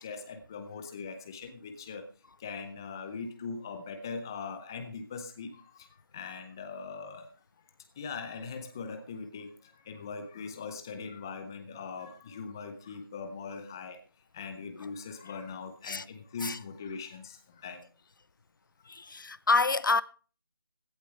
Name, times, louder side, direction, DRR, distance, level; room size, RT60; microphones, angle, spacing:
voice 1, 0.0-2.1 2.4-5.9 6.1-7.3 8.0-14.0 14.3-17.8, left 5 dB, 10° left, 0.5 m, -41 dB
voice 2, 18.9-20.0, left 4 dB, 60° left, 0.6 m, -27 dB
16.0 x 12.0 x 3.2 m
figure-of-eight pair, 165°, 12 cm